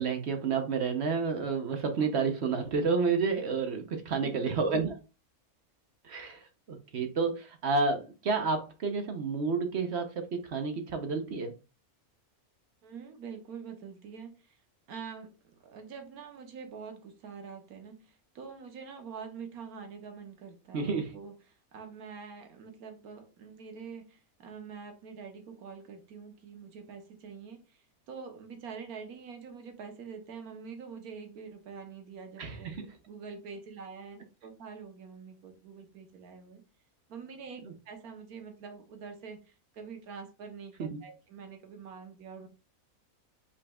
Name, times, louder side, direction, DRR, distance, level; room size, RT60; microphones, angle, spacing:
voice 1, 0.0-4.9 6.0-11.5 20.7-21.1 32.4-32.9 37.6-37.7 40.8-41.0, right 4 dB, 55° right, 0.9 m, -30 dB
voice 2, 4.2-4.8 12.8-14.6 14.9-15.3 15.6-21.3 21.7-32.7 33.1-36.6 37.1-42.5, right 6 dB, 80° right, 1.4 m, -45 dB
5.3 x 4.2 x 2.3 m
omnidirectional pair, 1.5 m